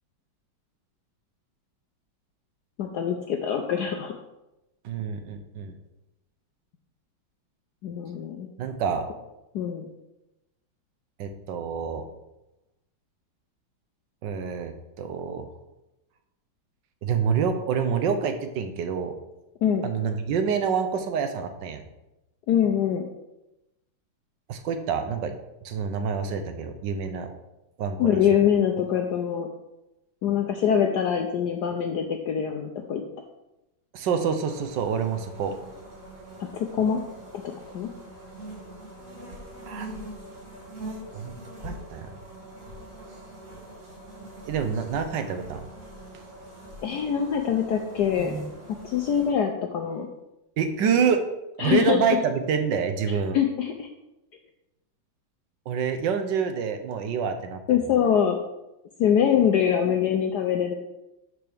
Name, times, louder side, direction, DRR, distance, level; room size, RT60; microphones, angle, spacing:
voice 1, 2.8-4.1 7.8-8.5 9.5-9.9 19.6-19.9 22.5-23.1 28.0-29.5 30.2-33.0 36.5-37.0 37.7-37.9 46.8-48.3 48.8-50.1 51.6-52.2 53.3-53.9 57.7-58.4 59.0-60.7, left 8 dB, 70° left, 3 dB, 1.0 m, -24 dB
voice 2, 4.8-5.7 8.6-9.1 11.2-12.1 14.2-15.5 17.0-19.2 19.8-21.8 24.5-25.4 25.6-27.3 27.8-28.2 33.9-35.5 39.7-39.9 41.1-41.4 41.6-42.1 44.4-45.7 50.6-51.2 51.6-53.4 55.7-57.6, right 6 dB, 70° right, 7 dB, 1.3 m, -27 dB
sound 1, 34.4-49.3, right 1 dB, 40° right, 2.7 m, -42 dB
12.0 x 4.6 x 3.4 m, 0.95 s
omnidirectional pair, 2.2 m